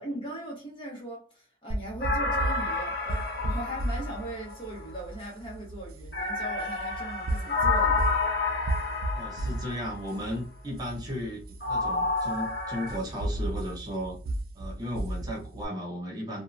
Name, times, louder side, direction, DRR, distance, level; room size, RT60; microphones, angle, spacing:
voice 1, 0.0-8.1, right 1 dB, 30° left, 1.1 m, -39 dB
sound 1, 1.7-15.6, right 1 dB, 55° right, 0.5 m, -34 dB
sound 2, 2.0-4.8 6.1-9.9 11.6-13.0, left 4 dB, 60° left, 0.8 m, -30 dB
voice 2, 9.1-14.2 14.5-16.4, equal, 20° right, 1.1 m, -35 dB
2.8 x 2.3 x 2.5 m
head